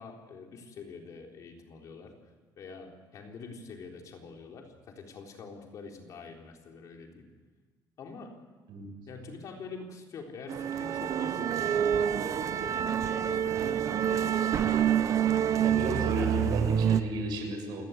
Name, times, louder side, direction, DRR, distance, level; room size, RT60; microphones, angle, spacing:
voice 1, 0.0-2.1 2.6-7.3 8.0-8.4 9.1-14.3, left 4 dB, 50° left, 2 dB, 3.9 m, -46 dB
sound 1, 10.5-17.0, right 9 dB, 45° right, 1.0 m, -27 dB
voice 2, 15.6-17.8, right 1 dB, 90° right, 3 dB, 7.1 m, -33 dB
28.0 x 18.5 x 8.3 m, 1.4 s
cardioid pair, 165°, 7 cm